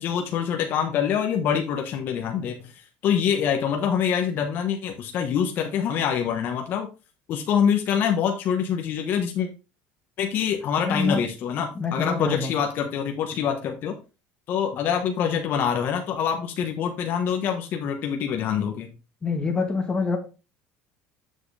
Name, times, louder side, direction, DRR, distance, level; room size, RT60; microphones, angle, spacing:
voice 1, 0.0-2.7 3.0-6.9 7.3-9.5 10.2-13.9 14.5-18.9, left 8 dB, 50° left, 3 dB, 1.4 m, -25 dB
voice 2, 10.8-11.2 11.7-12.5 19.2-20.2, left 4 dB, 20° left, 3 dB, 1.4 m, -25 dB
7.8 x 6.0 x 3.4 m, 0.31 s
supercardioid pair, 115°, 4 cm